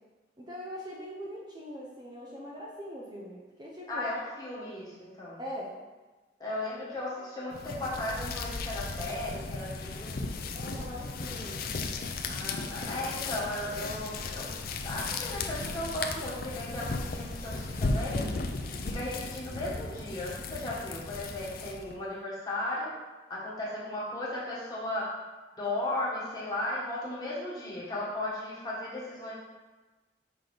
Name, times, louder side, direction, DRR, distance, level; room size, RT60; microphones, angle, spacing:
voice 1, 0.4-4.1 5.4-5.7 10.5-11.7, equal, 25° right, -4 dB, 0.7 m, -41 dB
voice 2, 3.9-5.4 6.4-10.3 12.3-14.5 14.8-18.3 18.7-22.9 23.3-25.1 25.6-29.3, left 1 dB, 20° left, -7 dB, 1.7 m, -36 dB
sound 1, 7.5-22.0, left 3 dB, 55° left, 0.5 m, -36 dB
Fire, 16.3-20.8, equal, 40° right, 1.7 m, -48 dB
5.9 x 3.9 x 5.0 m, 1.2 s
head